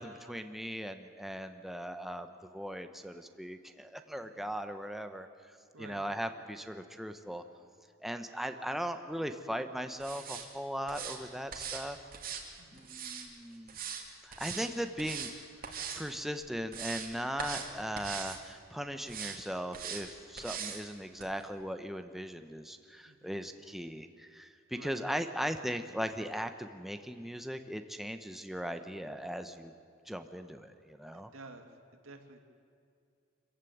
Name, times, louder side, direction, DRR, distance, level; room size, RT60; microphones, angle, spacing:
voice 1, 0.0-5.3 5.8-7.4 8.0-12.0 12.7-13.8 14.2-15.3 15.6-29.7 30.1-31.3, equal, ahead, 7 dB, 0.9 m, -38 dB
sound 1, 10.0-10.5 10.9-11.2 11.5-11.8 12.1-13.3 13.7-14.0 14.3-14.7 15.0-15.3 15.6-16.0 16.4-17.1 17.4-17.7 18.0-18.4 19.1-19.4 19.7-20.0 20.4-20.8 21.2-21.3, right 7 dB, 45° right, 2.6 m, -40 dB
voice 2, 12.6-12.9 23.0-23.4 24.7-25.0 31.1-31.6 32.0-32.4, right 3 dB, 90° right, 5 dB, 2.3 m, -51 dB
26.0 x 15.0 x 9.4 m, 2.3 s
head